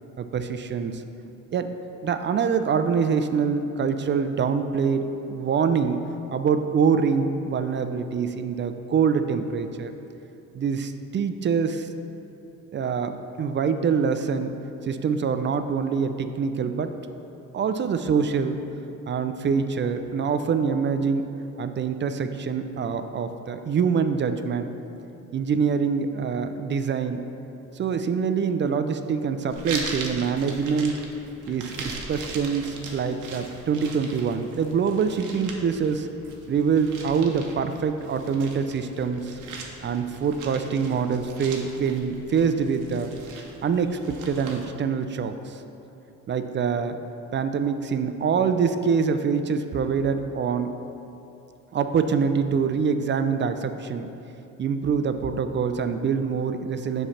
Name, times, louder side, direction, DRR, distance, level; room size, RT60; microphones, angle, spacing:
voice 1, 0.2-1.0 1.5-1.7 2.0-6.0 6.3-9.9 10.5-11.9 12.7-14.6 14.8-16.9 17.5-18.6 19.1-21.2 21.6-24.7 25.3-27.2 27.8-31.0 31.5-36.1 36.5-39.3 39.8-43.1 43.6-45.6 46.3-47.0 47.3-50.7 51.7-54.1 54.6-57.1, right 6 dB, 40° right, 9 dB, 0.4 m, -25 dB
sound 1, 29.5-44.7, right 3 dB, 85° right, 0.8 m, -40 dB
7.4 x 3.3 x 5.7 m, 2.9 s
cardioid pair, 90°, 30 cm